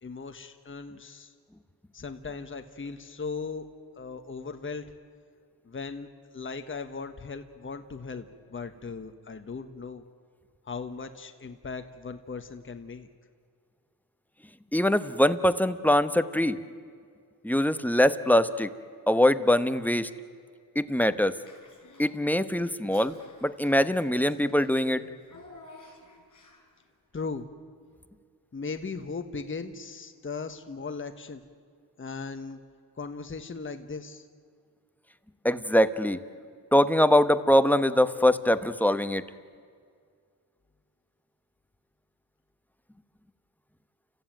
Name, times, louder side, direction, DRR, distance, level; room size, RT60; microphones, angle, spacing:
voice 1, 0.0-1.3 1.9-3.7 4.0-4.9 5.6-6.1 6.3-10.0 10.6-13.1 27.1-27.5 28.5-31.4 32.0-32.6 33.0-34.3, left 4 dB, 30° left, 7 dB, 1.3 m, -38 dB
voice 2, 14.7-16.6 17.4-18.7 19.1-20.1 20.7-21.3 22.0-23.1 23.4-25.0 35.4-36.2 36.7-39.2, left 1 dB, 5° left, 11 dB, 1.1 m, -23 dB
Child speech kid speaking / Bathtub (filling or washing), 21.3-22.2 22.5-26.8, left 3 dB, 50° left, 6.3 m, -53 dB
30.0 x 14.5 x 9.2 m, 2.1 s
cardioid pair, 75°, 39 cm